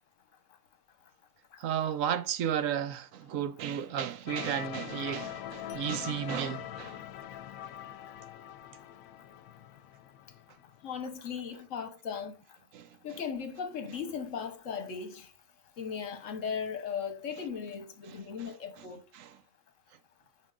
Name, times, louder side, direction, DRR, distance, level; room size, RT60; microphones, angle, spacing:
voice 1, 1.6-7.0 12.7-12.9 18.1-18.5 19.2-19.3, right 9 dB, 75° right, 1.0 m, -33 dB
sound 1, 4.3-11.0, left 11 dB, 85° left, 1.0 m, -43 dB
voice 2, 10.8-12.3 13.0-15.3 15.8-19.1, left 6 dB, 70° left, 1.4 m, -37 dB
9.7 x 4.6 x 2.4 m
omnidirectional pair, 1.4 m